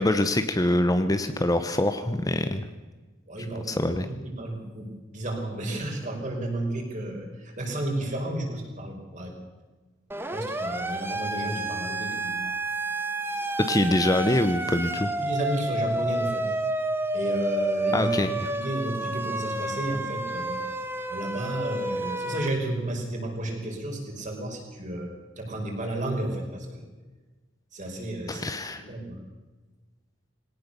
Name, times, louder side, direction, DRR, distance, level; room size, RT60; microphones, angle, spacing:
voice 1, 0.0-2.6 3.7-4.1 13.7-15.1 17.9-18.3 28.3-28.8, left 1 dB, 20° left, 9 dB, 0.9 m, -24 dB
voice 2, 3.3-9.3 10.3-12.4 15.2-16.5 17.1-20.6 21.1-26.8 27.7-28.5 28.7-29.2, right 1 dB, 40° right, 1 dB, 5.2 m, -32 dB
Siren, 10.1-22.5, right 2 dB, 10° right, 1.4 m, -30 dB
21.0 x 18.0 x 6.8 m, 1.2 s
head